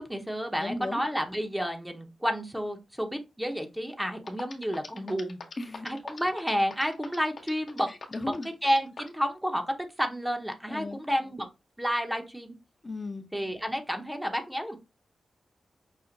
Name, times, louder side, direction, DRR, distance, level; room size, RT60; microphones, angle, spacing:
voice 1, 0.0-5.4 5.8-7.9 8.2-8.3 8.6-11.5 11.8-12.6 13.3-14.8, equal, 5° right, 0.8 m, -30 dB
voice 2, 0.6-1.0 5.6-5.9 7.9-8.5 10.7-11.0 12.8-13.2, left 2 dB, 35° left, 0.7 m, -35 dB
sound 1, 3.9-4.0 4.3-9.2, left 4 dB, 65° left, 1.1 m, -42 dB
5.8 x 2.1 x 3.8 m
cardioid pair, 75°, 0 cm